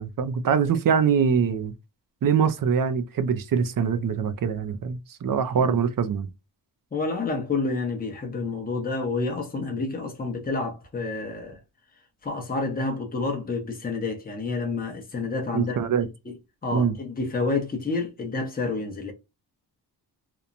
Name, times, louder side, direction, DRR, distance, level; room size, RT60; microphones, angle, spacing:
voice 1, 0.0-1.7 2.2-6.3 15.5-16.1 16.7-17.0, right 6 dB, 55° right, 0.5 m, -23 dB
voice 2, 6.9-11.6 12.2-15.9 16.3-16.4 16.6-19.1, left 3 dB, 20° left, 0.7 m, -29 dB
2.9 x 2.1 x 2.4 m
wide cardioid pair, 170°, 42 cm